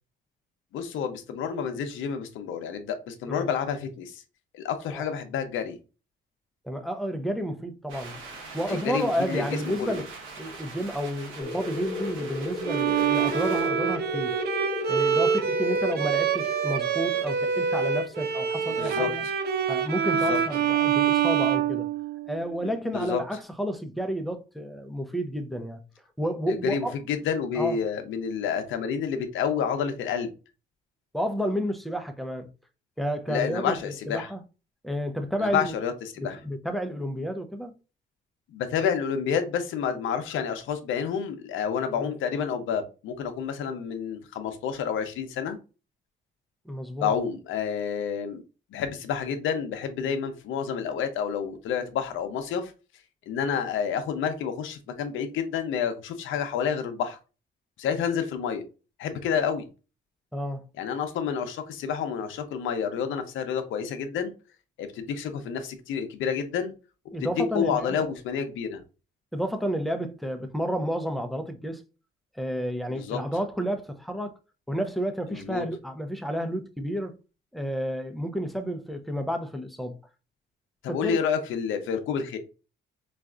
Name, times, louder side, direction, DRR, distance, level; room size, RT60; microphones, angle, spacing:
voice 1, 0.7-4.2 4.5-5.8 8.7-9.4 9.8-10.0 18.7-19.1 20.1-20.4 22.9-23.2 26.5-30.3 33.3-34.3 35.4-36.4 38.5-45.6 47.0-48.4 48.7-52.7 53.3-57.2 57.8-58.6 59.0-59.7 60.8-64.3 64.8-66.7 67.5-68.8 72.9-73.2 75.3-75.6 80.8-82.4, left 7 dB, 80° left, 0.6 m, -29 dB
voice 2, 6.6-8.2 8.5-10.1 10.4-14.4 14.9-19.2 19.7-21.9 22.3-25.8 26.2-26.9 27.6-27.8 31.1-32.5 33.0-34.4 34.8-35.8 36.2-37.8 41.9-42.1 46.7-47.1 60.3-60.6 67.1-68.0 69.3-71.8 72.4-74.3 74.7-77.1 77.5-80.0 80.9-81.2, equal, ahead, 0.6 m, -31 dB
sound 1, 7.9-13.7, right 3 dB, 85° right, 1.0 m, -42 dB
sound 2, 11.4-19.7, left 1 dB, 30° left, 0.7 m, -35 dB
Bowed string instrument, 12.6-22.5, right 7 dB, 55° right, 0.5 m, -26 dB
4.1 x 2.4 x 2.3 m
cardioid pair, 90°, 20 cm